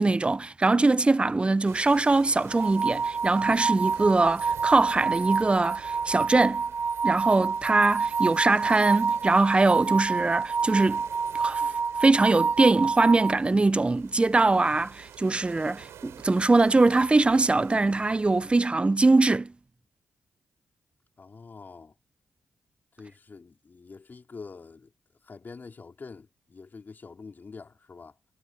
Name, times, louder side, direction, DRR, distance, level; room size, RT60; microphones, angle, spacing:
voice 1, 0.0-6.6 7.0-11.0 11.3-11.7 12.0-19.5, right 3 dB, 25° right, 0.8 m, -22 dB
sound 1, 1.7-18.6, right 10 dB, 80° right, 7.3 m, -49 dB
sound 2, 2.5-13.3, right 5 dB, 50° right, 1.7 m, -28 dB
voice 2, 21.2-21.9 22.9-24.9 25.2-28.1, left 4 dB, 45° left, 4.6 m, -45 dB
supercardioid pair, 55°, 5 cm